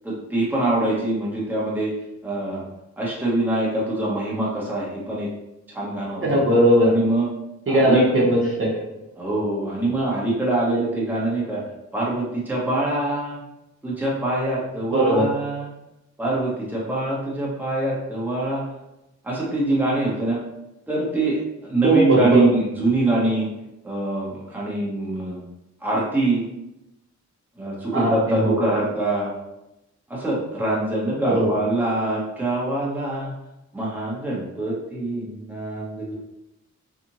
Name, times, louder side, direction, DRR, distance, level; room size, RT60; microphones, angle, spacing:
voice 1, 0.0-1.9 2.2-2.6 3.0-5.3 5.7-6.4 6.8-7.3 7.7-8.0 9.2-11.6 11.9-13.4 13.8-15.7 16.2-18.7 19.2-20.4 20.9-23.5 23.8-25.4 25.8-26.5 27.6-29.3 30.1-33.3 33.7-36.1, right 2 dB, 5° right, -6 dB, 0.9 m, -24 dB
voice 2, 6.2-6.9 7.7-8.8 14.9-15.2 21.8-22.4 27.9-28.5 31.3-31.4, right 1 dB, 45° right, -5 dB, 0.8 m, -18 dB
2.8 x 2.4 x 2.8 m, 0.91 s
wide cardioid pair, 90°, 30 cm